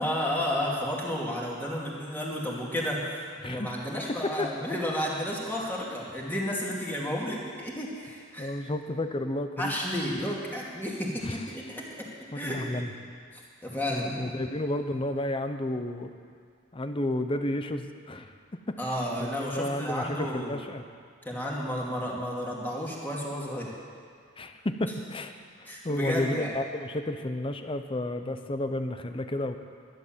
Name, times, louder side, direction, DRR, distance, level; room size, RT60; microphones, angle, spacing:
voice 1, 0.0-8.5 9.6-12.1 12.3-12.8 13.3-14.2 18.8-20.6 21.2-23.7 25.6-26.5, equal, 10° left, -4 dB, 2.3 m, -32 dB
voice 2, 3.4-3.8 4.4-4.5 8.4-9.7 11.2-11.4 12.3-12.9 13.9-16.1 16.7-18.3 18.7-18.8 19.2-20.8 24.4-25.3 25.8-29.6, left 1 dB, 25° left, 8 dB, 0.7 m, -31 dB
12.0 x 11.0 x 7.4 m, 2.2 s
head